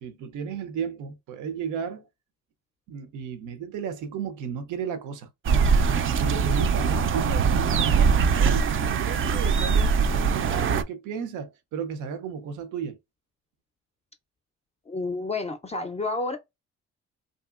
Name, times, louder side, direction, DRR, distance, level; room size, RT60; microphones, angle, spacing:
voice 1, 0.0-2.1 2.9-5.3 6.2-13.0, right 7 dB, 85° right, 0.7 m, -34 dB
sound 1, 5.4-10.8, right 5 dB, 45° right, 0.4 m, -22 dB
voice 2, 14.9-16.4, left 3 dB, 20° left, 0.4 m, -30 dB
2.7 x 2.7 x 2.4 m
cardioid pair, 90°, 30 cm